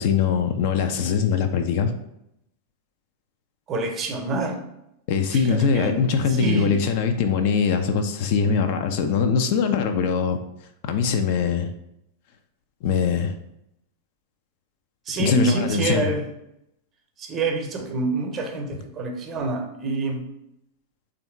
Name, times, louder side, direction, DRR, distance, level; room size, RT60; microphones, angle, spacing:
voice 1, 0.0-1.9 5.1-10.4 10.9-11.7 12.8-13.4 15.2-16.1, left 6 dB, 50° left, 7 dB, 0.4 m, -22 dB
voice 2, 3.7-4.6 5.3-6.1 6.4-6.8 15.1-16.3 17.2-20.2, right 3 dB, 30° right, 3 dB, 0.7 m, -27 dB
3.4 x 2.6 x 4.3 m, 0.81 s
figure-of-eight pair, 90°, 0 cm